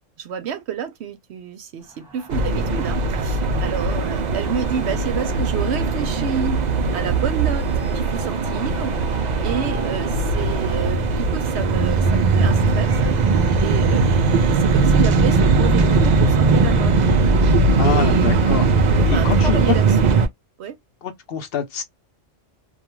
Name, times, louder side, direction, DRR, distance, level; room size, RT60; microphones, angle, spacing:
voice 1, 0.2-6.6 6.9-7.7 7.9-8.9 9.4-13.2 13.6-16.9 17.8-18.6 18.9-20.1 20.6-20.8, right 8 dB, 65° right, 0.8 m, -29 dB
sound 1, 1.8-10.9, right 1 dB, ahead, 1.2 m, -40 dB
sound 2, 2.3-20.3, right 3 dB, 80° right, 0.4 m, -19 dB
voice 2, 17.8-18.7 19.1-19.8 21.0-21.8, left 7 dB, 60° left, 0.7 m, -25 dB
2.3 x 2.2 x 3.0 m
omnidirectional pair, 1.3 m